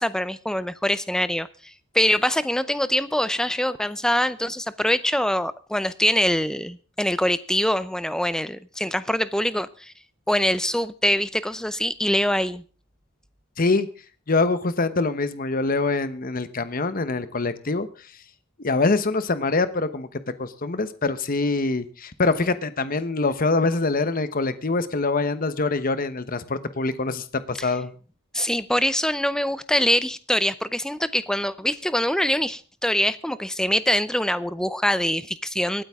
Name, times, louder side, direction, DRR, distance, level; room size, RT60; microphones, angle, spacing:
voice 1, 0.0-1.5 1.9-9.9 10.3-12.6 27.6-27.7 28.3-35.8, left 1 dB, 5° left, 0.6 m, -24 dB
voice 2, 13.6-13.9 14.3-17.9 18.6-27.9, left 3 dB, 45° left, 1.0 m, -24 dB
25.5 x 9.0 x 3.6 m
head